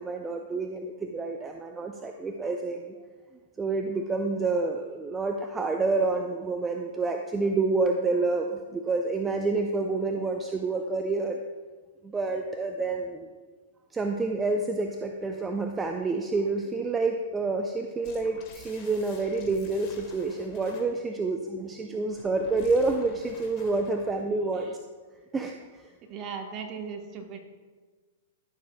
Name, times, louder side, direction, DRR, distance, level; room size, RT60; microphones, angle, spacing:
voice 1, 0.0-2.9 3.6-11.4 12.0-13.3 13.9-24.8 25.3-25.8, right 3 dB, 15° right, 4 dB, 0.4 m, -28 dB
sound 1, 18.0-21.0 22.1-24.3, left 4 dB, 40° left, 1.5 m, -49 dB
voice 2, 26.1-27.4, right 6 dB, 35° right, 4 dB, 1.1 m, -37 dB
12.5 x 6.6 x 2.2 m, 1.4 s
hypercardioid pair, 120°, 0 cm